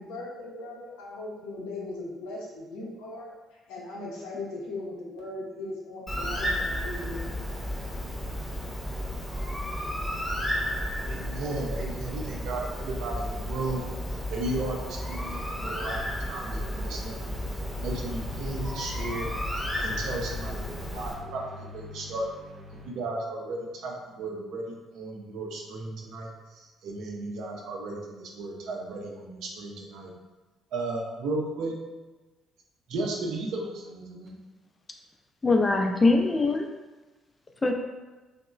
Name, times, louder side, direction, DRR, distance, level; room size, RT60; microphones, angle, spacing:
voice 1, 0.0-7.6, left 2 dB, 75° left, 0.6 m, -39 dB
Bird, 6.1-21.1, equal, 5° left, 0.7 m, -33 dB
voice 2, 11.0-13.8 14.3-17.2 17.8-19.3 19.8-22.3 22.8-30.1 30.7-31.7 32.9-34.4, right 2 dB, 65° right, 0.5 m, -35 dB
sound 1, 15.7-22.9, left 3 dB, 25° right, 0.8 m, -46 dB
voice 3, 35.4-36.7 37.6-37.7, left 3 dB, 30° left, 0.3 m, -22 dB
2.9 x 2.0 x 2.3 m
hypercardioid pair, 50°, 0 cm